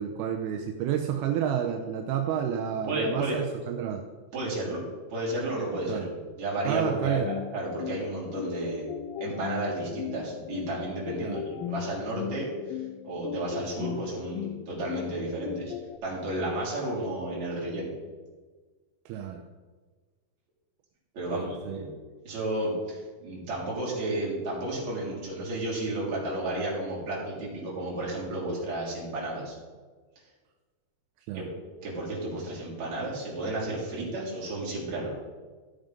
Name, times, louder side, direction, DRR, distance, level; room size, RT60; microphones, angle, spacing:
voice 1, 0.0-4.0 5.9-6.0 6.6-7.3 9.7-9.8 11.2-11.4 19.1-19.4 21.3-21.9 31.3-31.5, right 9 dB, 85° right, 4 dB, 2.6 m, -30 dB
voice 2, 2.9-3.4 4.3-4.8 5.1-8.8 9.2-12.8 13.0-15.7 16.0-17.9 21.1-21.9 22.2-29.6 31.3-31.5 31.8-35.1, right 1 dB, 45° right, -6 dB, 4.4 m, -32 dB
sound 1, 7.2-16.0, left 12 dB, 85° left, 2.0 m, -38 dB
13.5 x 7.1 x 5.3 m, 1.4 s
omnidirectional pair, 4.4 m